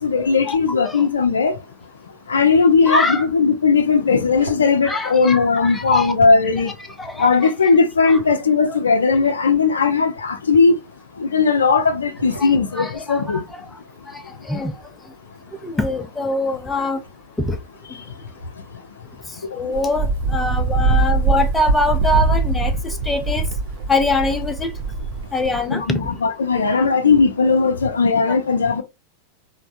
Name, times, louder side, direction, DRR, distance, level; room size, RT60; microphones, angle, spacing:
voice 1, 0.0-1.5 2.3-6.7 7.2-10.7 11.2-13.4 25.7-28.8, left 4 dB, 70° left, 0.4 m, -17 dB
sound 1, 2.4-2.7 3.9-4.7 6.1-6.7 7.9-8.4 10.2-10.8 11.9-12.5, right 1 dB, 80° right, 0.8 m, -37 dB
voice 2, 2.9-3.3 4.8-6.1 7.0-7.5 8.0-8.2 12.4-12.5 12.7-13.6 14.5-14.7 15.6-17.0 17.4-17.6 19.5-22.7 23.1-23.4 23.9-24.7 25.3-26.0, left 2 dB, 10° left, 0.5 m, -23 dB
Wind, 19.7-25.7, right 3 dB, 50° right, 0.4 m, -21 dB
3.3 x 2.0 x 2.5 m
figure-of-eight pair, 90°, 0 cm